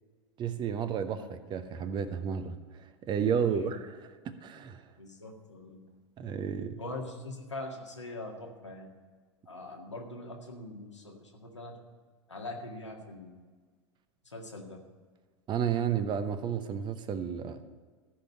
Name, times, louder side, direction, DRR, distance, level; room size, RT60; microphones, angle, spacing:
voice 1, 0.4-4.0 4.2-4.9 6.2-6.8 15.5-17.6, right 7 dB, 30° right, 10 dB, 0.9 m, -32 dB
voice 2, 3.4-3.8 5.0-5.8 6.8-8.9 9.5-11.8 12.3-13.4 14.2-14.8, left 2 dB, 90° left, 0 dB, 1.9 m, -42 dB
14.5 x 5.3 x 8.6 m, 1.5 s
figure-of-eight pair, 90°, 15 cm